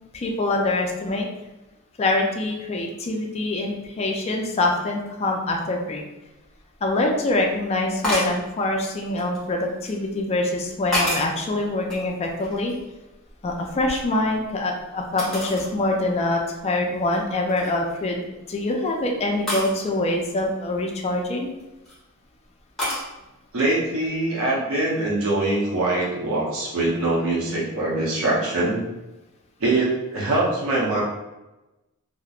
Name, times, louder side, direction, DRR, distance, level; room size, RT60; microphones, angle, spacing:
voice 1, 0.1-1.3 2.0-6.0 6.8-12.7 13.4-21.5, left 2 dB, 30° left, 1 dB, 0.3 m, -25 dB
sound 1, 6.6-6.7 8.0-8.4 9.2-10.0 10.6-11.4 11.8-12.9 13.2-14.5 15.2-15.7 16.2-16.3 16.9-17.1 17.5-17.9 19.5-19.7 21.4-21.9 22.8-23.1, equal, ahead, 0.9 m, -29 dB
voice 2, 23.5-28.9 29.6-31.0, right 2 dB, 65° right, -5 dB, 0.8 m, -23 dB
2.9 x 2.0 x 2.3 m, 1.0 s
head